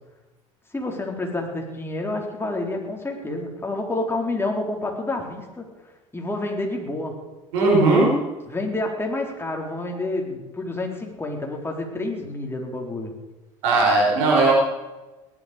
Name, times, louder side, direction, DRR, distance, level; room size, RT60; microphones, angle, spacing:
voice 1, 0.7-5.7 6.1-7.2 8.5-13.1, left 2 dB, 15° left, 1 dB, 4.1 m, -29 dB
voice 2, 7.5-8.1 13.6-14.5, right 3 dB, 75° right, -1 dB, 5.4 m, -17 dB
18.5 x 11.5 x 5.2 m, 1.1 s
hypercardioid pair, 75°, 16 cm